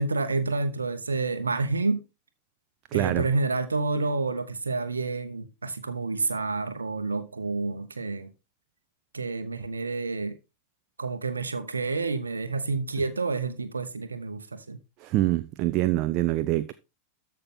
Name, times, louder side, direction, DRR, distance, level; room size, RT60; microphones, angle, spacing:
voice 1, 0.0-2.1 2.9-8.3 9.1-10.4 11.0-14.8, right 3 dB, 75° right, 0.9 m, -29 dB
voice 2, 2.9-3.3 15.0-16.7, right 15 dB, 40° right, 0.5 m, -25 dB
13.5 x 5.8 x 3.7 m
figure-of-eight pair, 90°, 0 cm